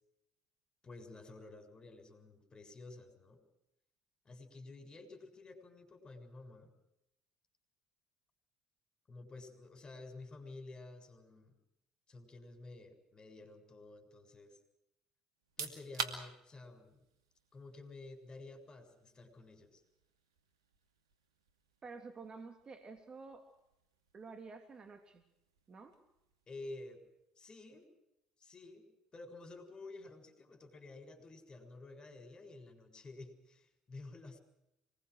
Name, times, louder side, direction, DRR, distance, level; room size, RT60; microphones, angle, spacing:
voice 1, 0.8-3.4 4.3-6.7 9.1-11.6 12.1-14.6 15.6-17.0 17.5-19.8 26.5-27.0 27.4-27.9 28.4-28.8 29.1-34.4, left 2 dB, 35° left, 8 dB, 6.9 m, -51 dB
sound 1, 15.3-28.0, right 6 dB, 85° right, 2.6 m, -50 dB
voice 2, 21.8-23.5 24.1-25.2 25.7-26.0, right 4 dB, 35° right, 6 dB, 3.2 m, -50 dB
26.5 x 21.0 x 6.4 m, 0.84 s
hypercardioid pair, 60°, 2 cm